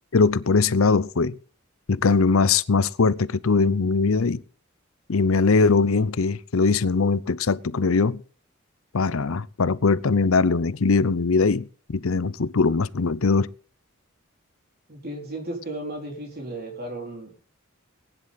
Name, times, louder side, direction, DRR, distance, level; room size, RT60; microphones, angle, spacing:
voice 1, 0.1-1.4 1.9-4.4 5.1-8.2 8.9-13.5, left 4 dB, 75° left, 0.7 m, -21 dB
voice 2, 14.9-17.3, right 1 dB, 50° right, 4.4 m, -34 dB
19.5 x 10.5 x 4.1 m
head